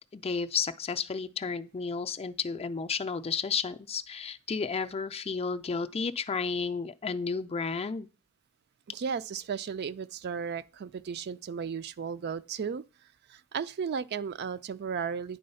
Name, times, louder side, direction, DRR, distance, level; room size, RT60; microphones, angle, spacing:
voice 1, 0.1-8.1, left 5 dB, 30° left, 0.4 m, -32 dB
voice 2, 8.9-12.8 13.3-15.4, right 6 dB, 50° right, 0.4 m, -35 dB
9.5 x 3.8 x 5.5 m
head